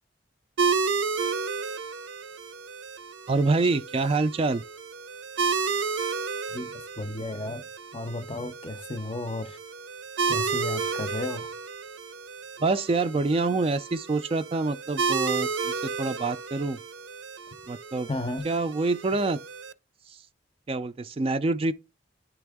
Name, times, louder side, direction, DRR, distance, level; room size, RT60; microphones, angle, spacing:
sound 1, 0.6-19.7, right 5 dB, 85° right, 0.5 m, -32 dB
voice 1, 3.3-4.6 12.6-16.8 17.7-18.1 18.4-19.4 20.1-20.2 20.7-21.7, right 3 dB, 30° right, 0.3 m, -26 dB
voice 2, 7.0-7.6 7.9-9.6 10.3-11.5 18.1-18.5, left 2 dB, 30° left, 0.5 m, -33 dB
10.0 x 3.4 x 3.5 m
head